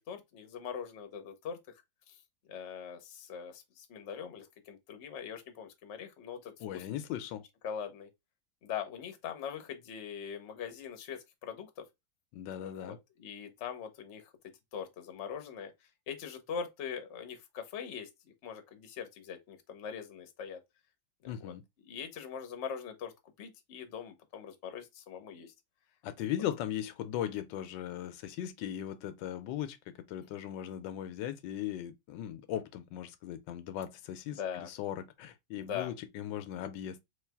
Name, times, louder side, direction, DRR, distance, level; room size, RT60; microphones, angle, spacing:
voice 1, 0.0-1.8 2.1-2.2 2.5-6.8 7.6-8.1 8.6-11.8 12.6-14.3 14.7-15.7 16.1-18.1 18.4-20.6 21.2-23.1 23.4-25.5 34.3-34.7 35.6-35.9, left 7 dB, 50° left, 0.9 m, -42 dB
voice 2, 6.6-7.4 12.3-13.0 21.3-21.6 26.0-37.0, left 11 dB, 85° left, 1.3 m, -38 dB
3.4 x 3.2 x 3.4 m
omnidirectional pair, 1.9 m